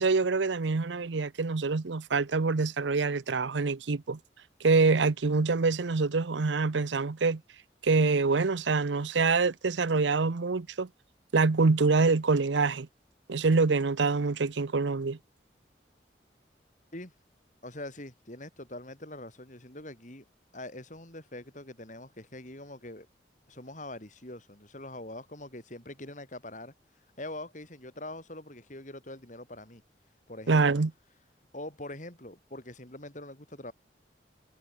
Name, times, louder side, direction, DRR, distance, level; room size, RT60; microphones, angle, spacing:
voice 1, 0.0-4.2 4.6-7.4 7.8-10.9 11.3-12.9 13.3-15.2 30.5-30.9, right 4 dB, 90° right, 0.7 m, -25 dB
voice 2, 17.6-20.2 20.5-23.1 23.5-26.7 27.2-29.8 30.3-30.6 31.5-33.7, left 1 dB, 45° left, 6.4 m, -43 dB
head